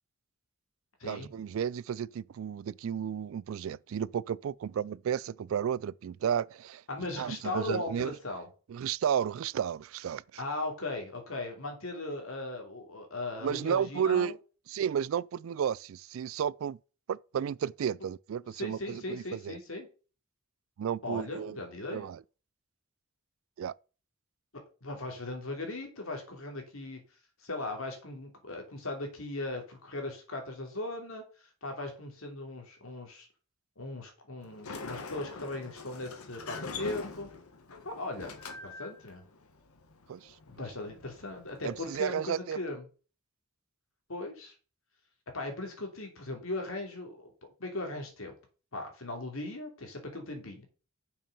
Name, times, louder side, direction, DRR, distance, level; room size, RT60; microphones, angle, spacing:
voice 1, 1.0-6.8 7.2-8.1 8.7-10.4 13.4-14.4 14.7-16.8 17.1-19.6 20.8-21.6 21.9-22.2 23.6-23.7 40.1-40.3 41.6-42.6, right 8 dB, 65° right, 0.3 m, -32 dB
voice 2, 6.9-8.5 10.4-14.3 18.5-19.9 21.0-22.1 24.8-27.0 27.4-31.2 31.6-33.3 33.8-37.3 37.8-38.3 38.6-39.2 40.5-42.8 44.1-44.5 45.3-47.3 47.6-48.3 48.7-50.7, left 2 dB, 70° left, 2.8 m, -38 dB
Sliding door, 34.4-42.0, left 4 dB, 85° left, 1.4 m, -44 dB
6.8 x 6.2 x 5.2 m
head